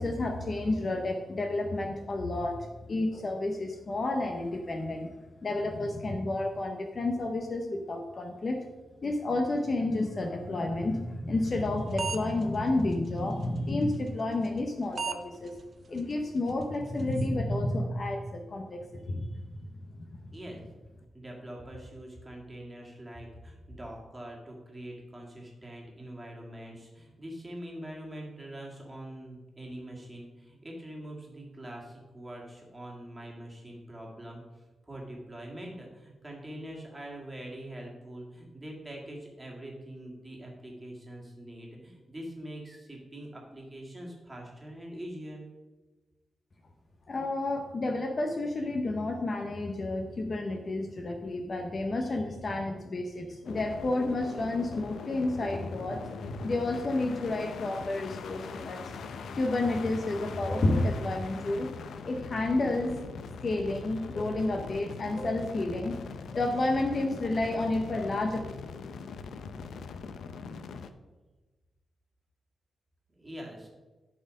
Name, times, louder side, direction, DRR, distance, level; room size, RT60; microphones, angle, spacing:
voice 1, 0.0-5.1 5.4-8.6 9.0-15.6 15.9-19.4 47.1-59.0 59.3-61.7 62.0-62.9 63.4-65.9 66.3-68.4, left 2 dB, 35° left, 4 dB, 0.7 m, -30 dB
sound 1, 11.6-11.7 12.0-12.4 12.9-13.0 14.4-14.6 15.0-15.2 15.5-15.6 16.0-16.1 16.5-16.6 16.8-17.3, right 6 dB, 40° right, 0.8 m, -34 dB
voice 2, 21.1-45.4 73.1-73.7, right 1 dB, 15° right, -2 dB, 1.9 m, -44 dB
sound 2, 53.4-70.9, left 5 dB, 80° left, 0.5 m, -42 dB
11.5 x 4.2 x 5.2 m, 1.2 s
wide cardioid pair, 160°, 0 cm